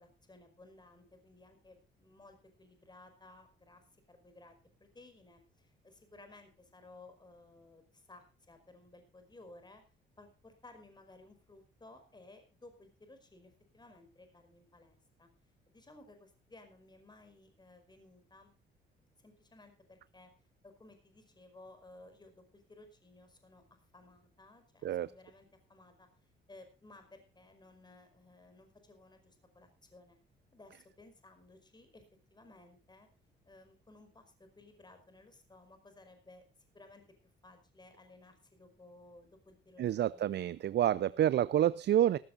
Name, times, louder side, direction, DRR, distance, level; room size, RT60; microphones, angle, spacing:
voice 1, 0.0-9.8 10.2-15.3 15.7-18.5 19.2-20.3 20.6-26.1 26.5-30.2 30.5-32.0 32.3-33.1 33.5-36.5 36.7-37.0 37.4-40.4 40.9-41.2, left 2 dB, 20° left, 8 dB, 5.1 m, -58 dB
voice 2, 39.8-42.2, right 11 dB, 60° right, 18 dB, 0.6 m, -28 dB
18.0 x 15.0 x 2.6 m, 0.33 s
cardioid pair, 90°, 20 cm